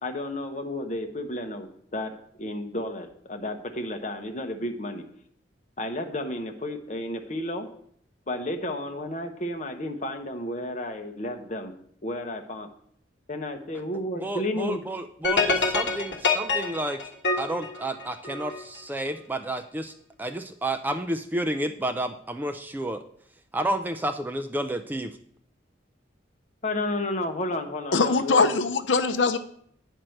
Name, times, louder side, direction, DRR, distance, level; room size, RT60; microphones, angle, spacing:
voice 1, 0.0-2.1 2.4-5.0 5.8-7.7 8.3-11.7 12.0-12.7 13.3-14.8 26.6-28.5, left 1 dB, 40° left, 5 dB, 0.9 m, -32 dB
voice 2, 14.2-17.0 17.4-19.9 20.2-23.0 23.5-25.2, right 1 dB, 10° right, 7 dB, 0.3 m, -30 dB
sound 1, 15.2-18.6, left 3 dB, 60° left, 1.2 m, -26 dB
voice 3, 27.9-29.4, left 4 dB, 75° left, 10 dB, 0.6 m, -22 dB
8.8 x 4.5 x 6.4 m, 0.65 s
head